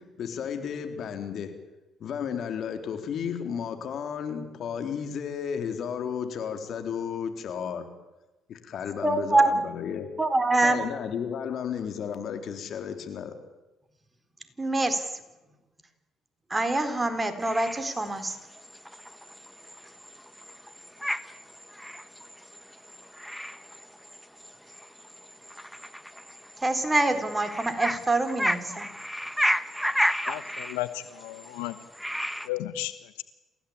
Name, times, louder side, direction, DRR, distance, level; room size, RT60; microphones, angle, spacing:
voice 1, 0.0-1.7 2.0-8.0 8.5-10.2 10.6-13.4, left 7 dB, 60° left, 3.8 m, -33 dB
voice 2, 9.0-9.5 10.2-10.8 14.6-15.1 16.5-18.4 26.6-28.9, right 2 dB, 20° right, 4.1 m, -25 dB
sound 1, 17.4-32.5, equal, ahead, 1.5 m, -33 dB
voice 3, 30.3-31.7 32.5-32.9, left 16 dB, 85° left, 1.2 m, -33 dB
28.0 x 16.0 x 8.8 m
supercardioid pair, 60°, 0 cm